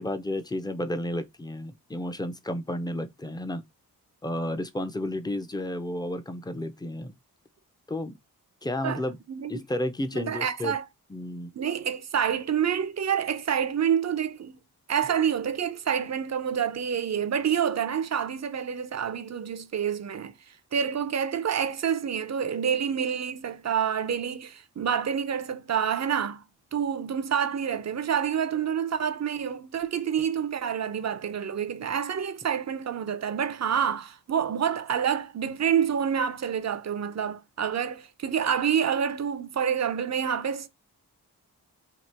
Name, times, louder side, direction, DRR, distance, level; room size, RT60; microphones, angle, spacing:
voice 1, 0.0-3.6 4.2-7.1 7.9-8.2 8.6-9.2 9.5-10.8 11.1-11.5, left 1 dB, 10° left, 0.6 m, -32 dB
voice 2, 10.1-10.8 11.5-14.6 14.9-20.3 20.7-26.4 26.7-40.7, right 8 dB, 45° right, 0.6 m, -28 dB
3.0 x 2.9 x 4.3 m
cardioid pair, 80°, 37 cm